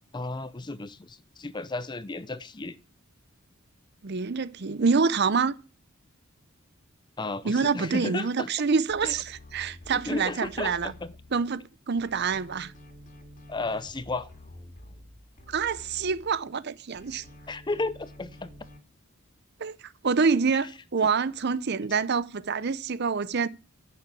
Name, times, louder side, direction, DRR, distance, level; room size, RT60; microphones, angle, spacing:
voice 1, 0.1-2.8 7.2-8.5 9.0-9.2 9.9-11.1 13.5-14.3 17.5-18.5, left 2 dB, 20° left, 0.5 m, -33 dB
voice 2, 4.0-5.5 7.4-10.9 11.3-12.7 15.5-17.2 19.6-23.5, right 5 dB, 50° right, 0.6 m, -26 dB
sound 1, 8.9-11.7 12.0-16.6 16.9-18.8, left 1 dB, 40° left, 2.5 m, -49 dB
10.5 x 6.9 x 8.4 m
head